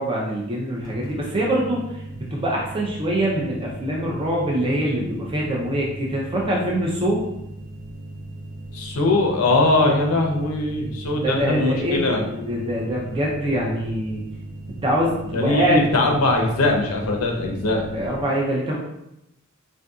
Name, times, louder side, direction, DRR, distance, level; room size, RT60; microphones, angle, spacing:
voice 1, 0.0-7.2 11.2-14.2 14.7-15.8 17.9-18.8, right 1 dB, 25° right, -3 dB, 0.5 m, -24 dB
sound 1, 0.8-18.2, right 1 dB, 20° left, 0.7 m, -37 dB
voice 2, 8.7-12.2 15.3-17.8, left 2 dB, 90° left, 2 dB, 0.6 m, -21 dB
3.5 x 2.6 x 2.3 m, 0.83 s
head